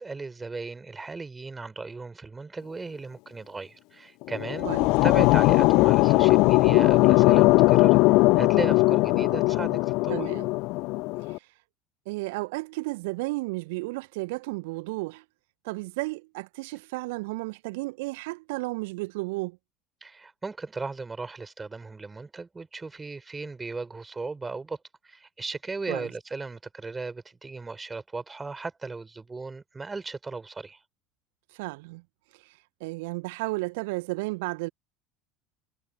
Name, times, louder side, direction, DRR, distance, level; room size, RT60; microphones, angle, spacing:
voice 1, 0.0-4.7 5.0-8.0 8.3-9.8 10.0-10.3 20.0-24.8 25.0-30.8, right 3 dB, 15° right, 4.9 m, -36 dB
sound 1, 4.2-11.4, left 23 dB, 55° left, 0.7 m, -20 dB
voice 2, 10.1-10.5 11.2-11.5 12.1-15.2 15.6-19.6 25.9-26.1 31.5-32.0 32.3-34.7, right 24 dB, 60° right, 1.1 m, -33 dB
figure-of-eight pair, 70°, 0 cm